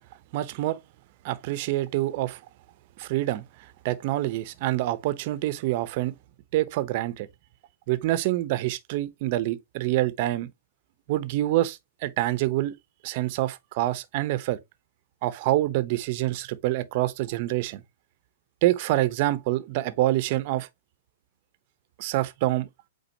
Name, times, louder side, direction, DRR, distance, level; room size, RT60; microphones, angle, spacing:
voice 1, 0.3-0.8 1.2-2.4 3.0-3.4 3.8-6.1 6.5-7.3 7.9-10.5 11.1-12.7 13.0-14.6 15.2-17.8 18.6-20.7 22.0-22.7, right 16 dB, 45° right, 0.9 m, -26 dB
8.3 x 4.0 x 2.8 m
hypercardioid pair, 155°, 0 cm